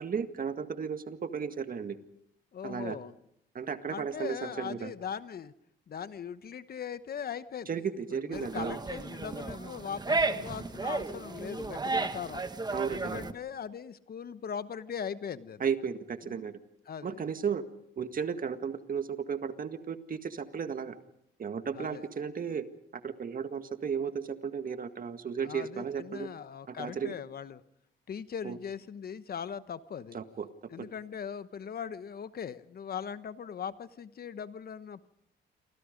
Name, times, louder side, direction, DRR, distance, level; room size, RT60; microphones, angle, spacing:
voice 1, 0.0-2.0 2.6-3.0 3.5-4.9 7.7-8.8 12.7-13.2 15.6-16.6 17.0-17.6 18.0-21.0 21.4-22.7 23.0-26.3 26.7-27.2 28.4-28.6 30.1-30.5 30.8-30.9, right 6 dB, 45° right, 9 dB, 1.8 m, -34 dB
voice 2, 2.5-3.1 3.9-5.5 5.9-7.8 8.2-12.4 12.9-15.6 16.2-16.4 16.9-17.2 21.7-22.0 25.4-27.6 28.1-30.2 30.7-35.1, left 7 dB, 50° left, 13 dB, 1.1 m, -40 dB
sound 1, 8.3-13.3, right 3 dB, 20° right, 1.4 m, -33 dB
28.0 x 24.5 x 5.2 m, 0.72 s
cardioid pair, 90°, 20 cm